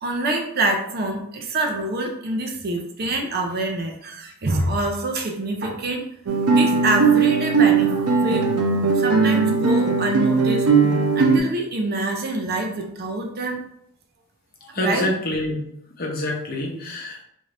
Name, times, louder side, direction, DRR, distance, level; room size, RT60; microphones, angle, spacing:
voice 1, 0.0-6.0 6.5-8.5 8.9-10.7 11.1-13.6 14.6-15.1, right 2 dB, 45° right, 2 dB, 0.5 m, -26 dB
Guitar, 6.3-11.4, right 4 dB, 90° right, 0.6 m, -18 dB
voice 2, 14.7-15.6 16.0-17.2, left 1 dB, 40° left, -1 dB, 0.8 m, -26 dB
3.7 x 2.6 x 3.3 m, 0.73 s
head